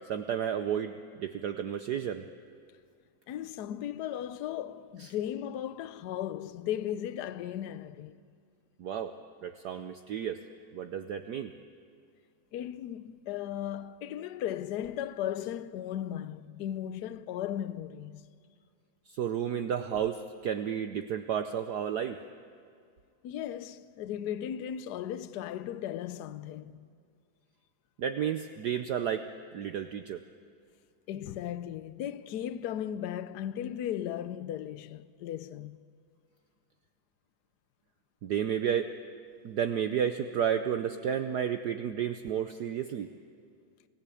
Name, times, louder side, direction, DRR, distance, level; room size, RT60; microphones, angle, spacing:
voice 1, 0.1-2.2 5.0-5.1 8.8-9.1 9.4-10.4 10.7-11.5 19.1-22.2 28.0-29.3 29.5-30.2 38.2-38.9 39.4-43.1, right 8 dB, 65° right, 1.1 m, -32 dB
voice 2, 3.3-8.2 12.5-18.3 23.2-26.9 31.1-35.8, left 10 dB, 65° left, 1.1 m, -36 dB
28.5 x 17.5 x 8.4 m
omnidirectional pair, 2.3 m